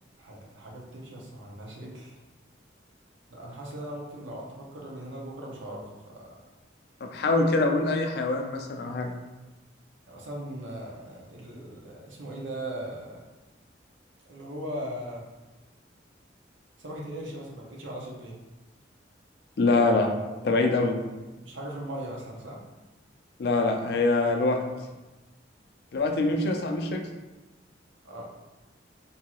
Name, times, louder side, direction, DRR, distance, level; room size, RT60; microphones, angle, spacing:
voice 1, 0.2-2.2 3.3-6.4 10.1-13.2 14.3-15.2 16.8-18.4 21.4-22.6 28.0-28.2, right 1 dB, 80° right, -2 dB, 0.7 m, -39 dB
voice 2, 7.0-9.1 19.6-20.1 20.4-21.0 23.4-24.6 25.9-27.1, left 3 dB, 55° left, 3 dB, 0.3 m, -24 dB
2.7 x 2.3 x 2.9 m, 1.1 s
head